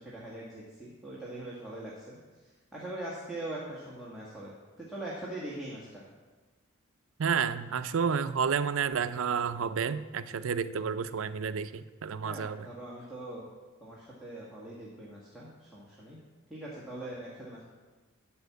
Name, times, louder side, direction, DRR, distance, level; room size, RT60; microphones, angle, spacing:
voice 1, 0.0-2.2 2.7-6.0 12.2-13.5 13.8-16.2 16.5-17.6, right 1 dB, ahead, -7 dB, 1.6 m, -42 dB
voice 2, 7.2-12.7, right 6 dB, 75° right, 12 dB, 0.5 m, -30 dB
12.0 x 4.4 x 8.2 m, 1.3 s
head